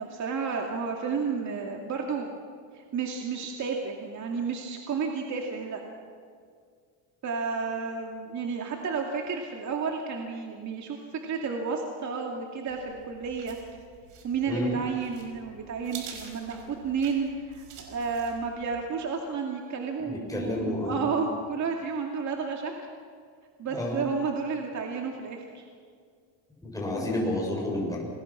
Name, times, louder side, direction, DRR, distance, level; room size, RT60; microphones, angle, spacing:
voice 1, 0.0-2.3 2.7-5.8 7.2-13.6 14.2-22.7 23.6-25.6 26.9-27.3, right 5 dB, 35° right, 1 dB, 2.4 m, -32 dB
sound 1, 12.7-18.9, right 6 dB, 60° right, 5.1 m, -48 dB
voice 2, 14.5-14.8 20.0-21.0 23.7-24.0 26.6-28.0, left 1 dB, 5° left, -2 dB, 7.0 m, -30 dB
27.5 x 21.5 x 5.9 m, 2.1 s
cardioid pair, 125°, 49 cm